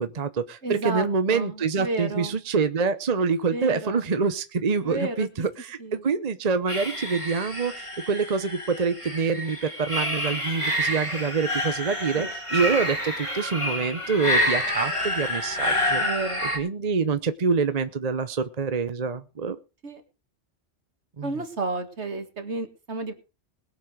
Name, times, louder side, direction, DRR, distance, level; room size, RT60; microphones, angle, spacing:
voice 1, 0.0-16.0 16.5-19.6 21.2-21.3, right 5 dB, 40° right, 11 dB, 0.9 m, -26 dB
voice 2, 0.6-2.3 3.5-4.1 4.8-5.3 5.8-6.0 12.1-12.3 16.0-16.5 19.8-20.0 21.2-23.1, right 3 dB, 65° right, 7 dB, 2.3 m, -32 dB
sound 1, 6.7-16.6, left 1 dB, 25° left, 3.1 m, -28 dB
21.0 x 7.3 x 4.9 m, 0.31 s
omnidirectional pair, 1.2 m